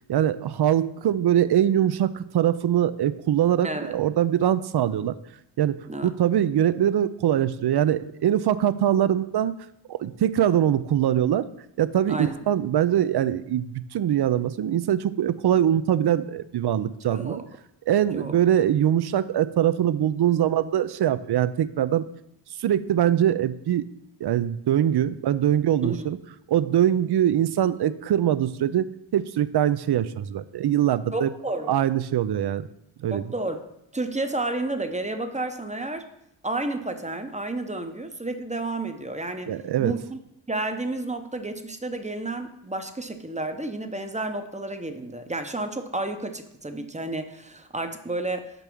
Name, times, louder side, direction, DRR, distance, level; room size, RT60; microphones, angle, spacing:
voice 1, 0.1-5.2 5.6-9.5 9.9-11.5 11.8-17.4 17.9-22.0 22.6-23.8 24.2-26.2 26.5-28.9 29.1-31.3 31.7-32.7 33.0-33.2 39.5-39.9, right 10 dB, 55° right, 15 dB, 0.5 m, -23 dB
voice 2, 12.1-12.4 17.1-17.5 18.1-18.4 25.8-26.0 31.1-31.7 33.1-33.6 33.9-36.1 36.4-40.2 40.5-48.6, right 2 dB, 15° right, 7 dB, 0.8 m, -31 dB
5.5 x 5.3 x 6.1 m, 0.81 s
cardioid pair, 65°, 47 cm